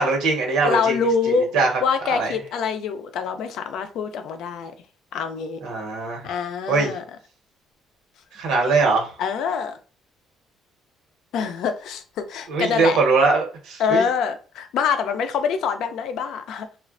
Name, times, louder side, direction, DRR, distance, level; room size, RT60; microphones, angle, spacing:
voice 1, 0.0-1.0 1.5-1.7 2.1-2.3 5.6-6.3 6.7-6.9 8.3-9.1 12.5-14.1, right 4 dB, 90° right, 1 dB, 1.1 m, -21 dB
voice 2, 0.6-1.5 1.8-4.8 5.1-5.6 6.2-7.0 9.2-9.8 11.3-13.0 13.8-16.8, left 6 dB, 65° left, 8 dB, 0.4 m, -25 dB
3.1 x 2.4 x 2.5 m, 0.38 s
cardioid pair, 155°, 0 cm